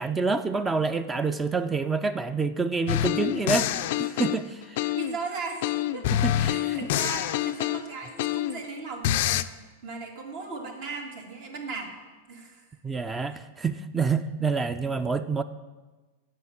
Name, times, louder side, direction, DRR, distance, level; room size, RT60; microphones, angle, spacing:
voice 1, 0.0-4.8 6.1-6.8 12.8-15.4, right 4 dB, 15° right, 12 dB, 0.4 m, -27 dB
sound 1, 2.9-5.2 5.6-8.7 9.0-9.4, left 13 dB, 60° left, 0.3 m, -26 dB
voice 2, 5.0-11.9 12.3-12.6, right 4 dB, 60° right, 2 dB, 1.9 m, -37 dB
7.6 x 5.8 x 6.9 m, 1.2 s
hypercardioid pair, 105°, 0 cm